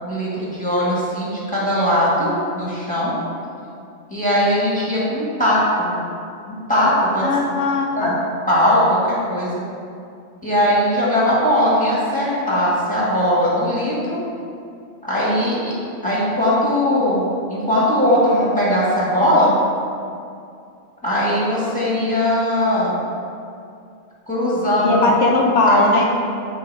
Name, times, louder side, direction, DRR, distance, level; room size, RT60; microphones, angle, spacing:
voice 1, 0.0-3.1 4.1-6.0 6.5-7.6 8.0-8.1 8.5-9.6 10.4-14.2 15.0-15.7 16.0-19.6 21.0-23.0 24.3-25.0 25.6-26.0, equal, 5° left, -9 dB, 1.5 m, -19 dB
voice 2, 7.2-8.1 24.8-26.0, left 2 dB, 75° left, -1 dB, 1.1 m, -18 dB
7.7 x 3.4 x 4.6 m, 2.4 s
omnidirectional pair, 1.2 m